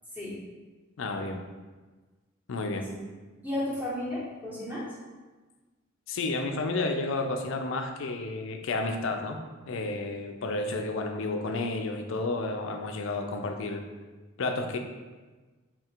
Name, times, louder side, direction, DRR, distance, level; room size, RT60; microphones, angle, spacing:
voice 1, 1.0-1.4 2.5-2.9 6.1-9.4 9.7-13.8 14.4-14.8, left 2 dB, 65° left, 5 dB, 0.4 m, -31 dB
voice 2, 2.7-3.0 3.4-4.9, left 1 dB, 10° right, -7 dB, 1.0 m, -34 dB
3.7 x 2.4 x 4.3 m, 1.3 s
head